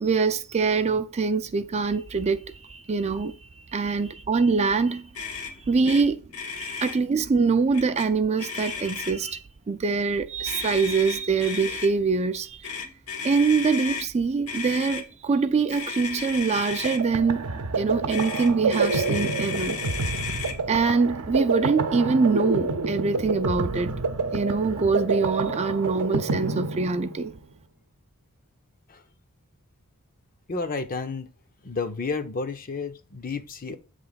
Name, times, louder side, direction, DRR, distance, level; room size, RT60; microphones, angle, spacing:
voice 1, 0.0-5.1 5.6-6.3 6.6-12.8 13.2-17.5 17.8-19.8 20.7-23.9 24.3-27.3, right 4 dB, 30° right, 0.4 m, -24 dB
Motor vehicle (road), 5.1-5.5 5.8-6.0 6.3-7.0 7.7-8.1 8.4-9.3 10.4-11.9 12.6-14.1 14.5-15.0 15.7-17.0 18.1-20.6, left 5 dB, 75° left, 1.2 m, -34 dB
sound 1, 16.6-27.4, right 4 dB, 75° right, 0.7 m, -28 dB
voice 2, 30.5-31.3 31.6-33.8, left 4 dB, 40° left, 0.6 m, -31 dB
7.7 x 3.3 x 3.9 m
head